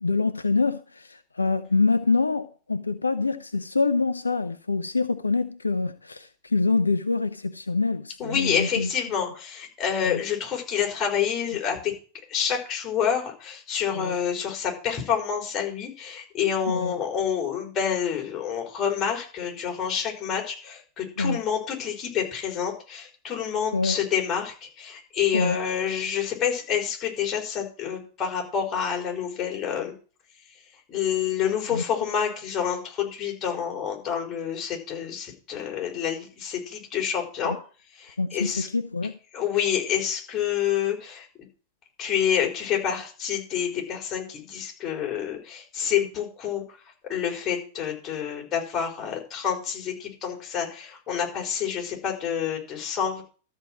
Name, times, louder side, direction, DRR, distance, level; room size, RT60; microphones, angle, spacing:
voice 1, 0.0-8.9 10.0-10.2 13.9-14.2 16.7-16.9 21.2-21.4 23.7-24.0 25.3-25.6 31.7-31.8 37.4-37.6 38.2-39.1, left 3 dB, 85° left, 0.6 m, -25 dB
voice 2, 8.2-11.9 12.3-29.9 30.9-37.5 38.0-38.7 39.3-41.3 42.0-46.8 47.1-53.2, left 8 dB, 25° left, 4.7 m, -28 dB
13.0 x 4.6 x 7.4 m
figure-of-eight pair, 95°, 0 cm